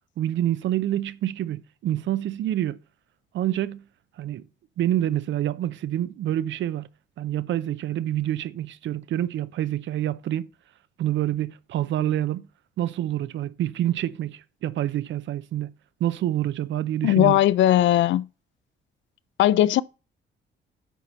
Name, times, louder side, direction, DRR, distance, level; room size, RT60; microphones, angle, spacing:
voice 1, 0.2-2.8 3.3-3.8 4.2-4.4 4.8-6.9 7.2-10.5 11.0-12.5 12.8-15.7 16.0-17.4, right 12 dB, 70° right, 0.6 m, -27 dB
voice 2, 17.0-18.2 19.4-19.8, left 13 dB, 70° left, 0.5 m, -18 dB
9.2 x 4.2 x 5.1 m
cardioid pair, 90°, 20 cm